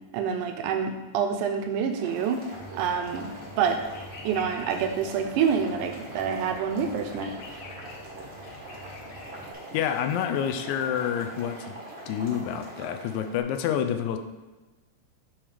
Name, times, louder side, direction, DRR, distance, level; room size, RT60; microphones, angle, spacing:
voice 1, 0.1-2.4 2.7-3.3 3.6-3.8 4.3-7.3, right 7 dB, 85° right, 5 dB, 2.2 m, -27 dB
Boiling, 1.8-13.4, right 1 dB, 65° right, 0.6 m, -43 dB
sound 1, 2.5-9.5, left 2 dB, 60° left, 2.1 m, -47 dB
voice 2, 9.7-11.8 12.1-14.2, left 9 dB, 80° left, 7 dB, 1.9 m, -28 dB
8.8 x 3.2 x 5.0 m, 1.2 s
omnidirectional pair, 3.5 m